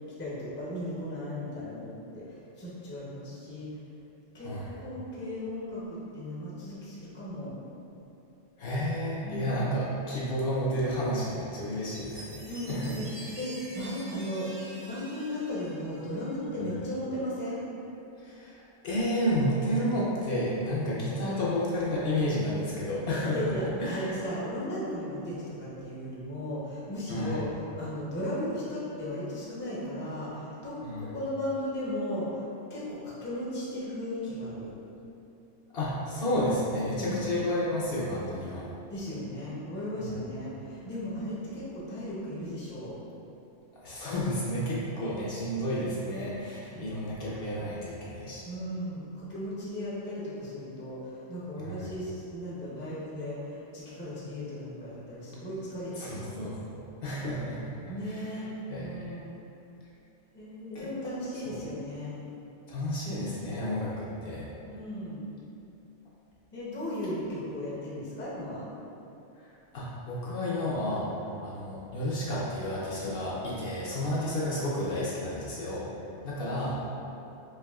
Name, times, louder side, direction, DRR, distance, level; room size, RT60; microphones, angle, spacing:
voice 1, 0.2-3.7 4.3-7.5 9.2-9.5 12.5-17.6 23.3-32.4 32.7-34.7 37.0-37.2 38.9-43.0 46.7-47.1 48.5-56.5 57.9-58.5 58.8-59.4 60.3-62.1 64.6-65.2 66.5-68.7 76.3-76.6, left 1 dB, 15° left, -8 dB, 0.5 m, -36 dB
voice 2, 8.6-12.9 18.2-24.1 27.1-27.4 30.8-31.1 35.7-38.7 43.8-48.4 51.6-51.8 56.0-57.7 58.0-58.3 58.7-58.9 61.5-61.6 62.7-64.5 69.4-71.1 71.4-75.9 76.2-76.7, equal, 60° left, -7 dB, 0.8 m, -31 dB
Chime, 11.9-16.6, right 1 dB, 45° right, 0.8 m, -47 dB
4.7 x 2.6 x 2.3 m, 2.9 s
omnidirectional pair, 1.2 m